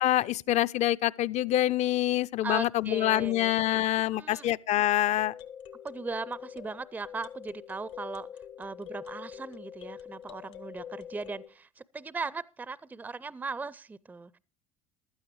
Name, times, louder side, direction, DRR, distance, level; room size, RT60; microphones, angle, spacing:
voice 1, 0.0-5.3, left 13 dB, 40° left, 0.5 m, -26 dB
voice 2, 2.4-4.5 5.8-8.3 8.6-14.4, right 4 dB, 10° right, 0.5 m, -38 dB
sound 1, 4.7-11.5, left 9 dB, 65° left, 1.0 m, -45 dB
15.0 x 12.0 x 3.2 m
figure-of-eight pair, 65°, 17 cm